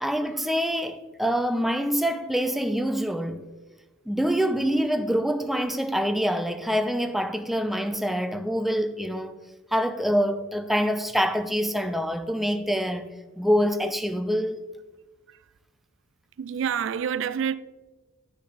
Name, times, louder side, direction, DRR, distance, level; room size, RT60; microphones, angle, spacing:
voice 1, 0.0-3.4 4.1-9.4 9.7-13.1 13.4-14.6, equal, ahead, 0.4 m, -25 dB
voice 2, 16.4-17.6, right 7 dB, 65° right, 0.3 m, -27 dB
10.5 x 6.5 x 3.9 m
head